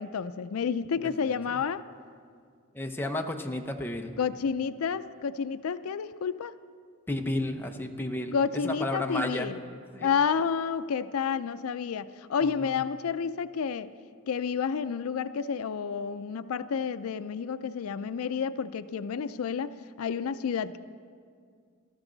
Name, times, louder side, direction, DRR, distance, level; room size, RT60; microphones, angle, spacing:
voice 1, 0.0-1.9 4.2-6.5 8.3-9.6 10.0-13.9 14.3-20.8, left 6 dB, 90° left, 13 dB, 0.4 m, -30 dB
voice 2, 1.0-1.4 2.7-4.1 7.1-8.4 8.6-9.5 9.9-10.1 12.4-12.8, left 1 dB, 10° left, 3 dB, 0.7 m, -32 dB
19.0 x 13.5 x 3.9 m, 2.1 s
head